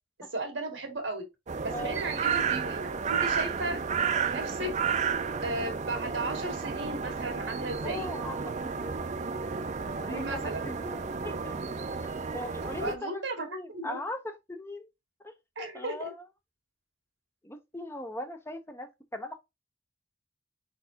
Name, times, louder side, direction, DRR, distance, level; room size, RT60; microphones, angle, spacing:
voice 1, 0.3-1.2 1.6-3.8 4.3-4.9 5.4-8.1 10.1-10.7 12.8-14.0 15.6-16.1, right 2 dB, 70° right, 1.8 m, -35 dB
sound 1, 1.5-13.0, right 6 dB, 35° right, 0.4 m, -32 dB
voice 2, 7.8-9.0 9.9-11.5 12.3-14.9 15.2-16.2 17.4-19.3, left 1 dB, 10° left, 0.6 m, -40 dB
4.7 x 4.2 x 2.6 m
head